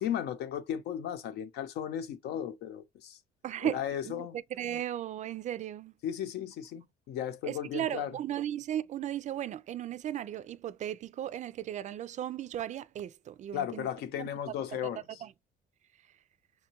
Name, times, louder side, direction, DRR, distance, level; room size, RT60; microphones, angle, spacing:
voice 1, 0.0-3.2 3.6-4.4 6.0-8.1 13.5-15.0, left 10 dB, 80° left, 0.8 m, -35 dB
voice 2, 3.4-5.9 7.4-13.9 14.2-14.3 15.2-15.3, right 11 dB, 45° right, 0.4 m, -36 dB
5.7 x 2.3 x 2.9 m
cardioid pair, 110°, 17 cm